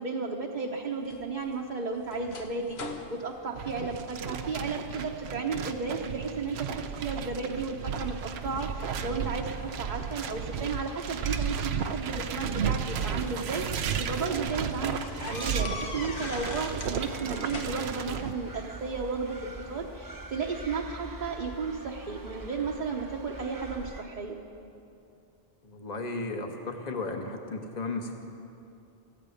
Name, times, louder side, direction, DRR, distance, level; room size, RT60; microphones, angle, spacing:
voice 1, 0.0-15.0 15.3-24.4, right 4 dB, 50° right, -1 dB, 1.0 m, -34 dB
sound 1, 1.1-4.5 4.9-5.3 5.6-6.2 6.7-7.4 8.0-9.4 10.6-10.7 11.9-13.3 13.9-14.0 14.3-14.4 15.0-17.0 17.3-18.1, left 3 dB, 85° left, 1.3 m, -42 dB
sound 2, 3.5-18.3, right 7 dB, 90° right, 0.9 m, -34 dB
sound 3, 8.0-24.0, right 2 dB, 20° right, 0.7 m, -45 dB
voice 2, 25.6-28.2, left 3 dB, 45° left, 4 dB, 1.3 m, -35 dB
14.5 x 8.8 x 9.1 m, 2.7 s
omnidirectional pair, 1.0 m